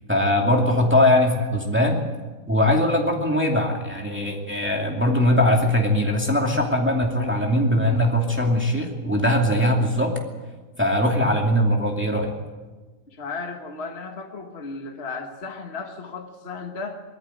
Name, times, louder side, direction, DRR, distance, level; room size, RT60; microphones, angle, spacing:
voice 1, 0.1-2.0 2.5-10.1 10.8-12.3, left 1 dB, 5° right, 0 dB, 2.5 m, -21 dB
voice 2, 13.1-17.0, left 4 dB, 40° left, 3 dB, 1.7 m, -35 dB
21.5 x 14.0 x 9.2 m, 1.3 s
omnidirectional pair, 1.7 m